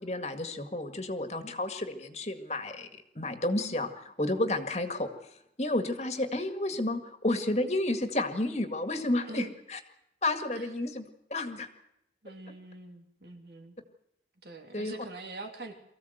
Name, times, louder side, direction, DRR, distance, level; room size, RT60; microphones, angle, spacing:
voice 1, 0.0-2.9 3.2-5.1 5.6-9.8 10.2-11.0 11.3-11.7 14.7-14.9, left 1 dB, 35° left, 7 dB, 2.0 m, -31 dB
voice 2, 12.2-13.8 14.4-15.7, right 2 dB, 65° right, 4 dB, 3.0 m, -44 dB
23.5 x 15.0 x 8.0 m, 0.82 s
head